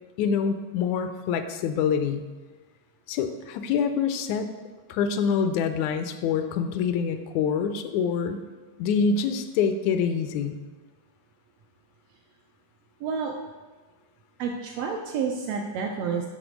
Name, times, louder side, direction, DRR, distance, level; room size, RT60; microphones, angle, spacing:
voice 1, 0.2-2.2 3.1-4.5 4.9-8.4 8.8-10.6, left 6 dB, 80° left, 9 dB, 1.9 m, -26 dB
voice 2, 13.0-13.3 14.4-16.3, right 6 dB, 80° right, 2 dB, 1.5 m, -29 dB
6.9 x 4.0 x 6.2 m, 1.3 s
omnidirectional pair, 3.4 m